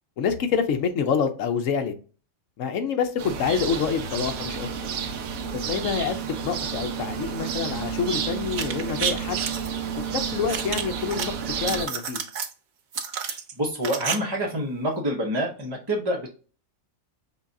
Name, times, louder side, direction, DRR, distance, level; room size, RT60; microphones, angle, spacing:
voice 1, 0.2-1.9 2.6-4.9 5.5-9.5 9.9-12.2, left 6 dB, 70° left, 1.1 m, -27 dB
sound 1, 3.2-11.9, right 7 dB, 85° right, 1.1 m, -31 dB
sound 2, 8.5-9.7 10.5-11.3 11.6-12.5 12.9-14.2 14.4-14.5, right 7 dB, 65° right, 0.5 m, -30 dB
voice 2, 13.3-16.3, right 1 dB, 25° right, 0.7 m, -27 dB
5.5 x 2.3 x 2.6 m
omnidirectional pair, 1.4 m